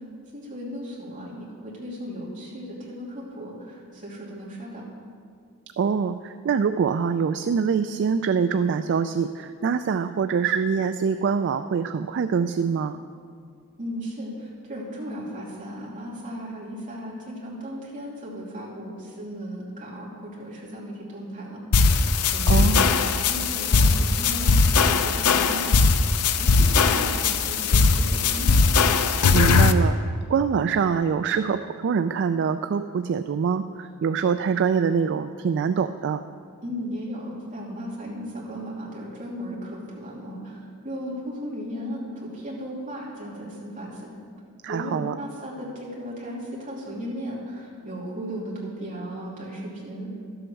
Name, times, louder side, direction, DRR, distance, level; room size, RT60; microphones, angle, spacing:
voice 1, 0.3-4.8 13.8-21.6 22.3-26.0 26.4-28.6 36.6-44.1 44.7-50.1, equal, 35° right, -5 dB, 2.8 m, -36 dB
voice 2, 5.8-13.0 22.5-22.9 29.3-30.0 30.3-36.2 44.6-45.1, right 6 dB, 55° right, 10 dB, 0.3 m, -24 dB
sound 1, 21.7-29.7, left 4 dB, 85° left, 0.6 m, -19 dB
12.5 x 7.8 x 6.3 m, 2.2 s
head